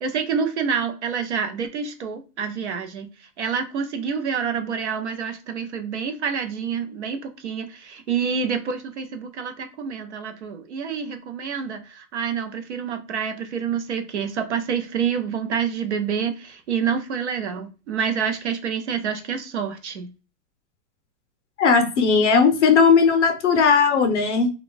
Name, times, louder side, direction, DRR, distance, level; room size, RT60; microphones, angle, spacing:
voice 1, 0.0-20.1, right 6 dB, 50° right, 0.5 m, -27 dB
voice 2, 21.6-24.5, left 5 dB, 50° left, 0.6 m, -17 dB
2.5 x 2.3 x 3.8 m
supercardioid pair, 175°, 47 cm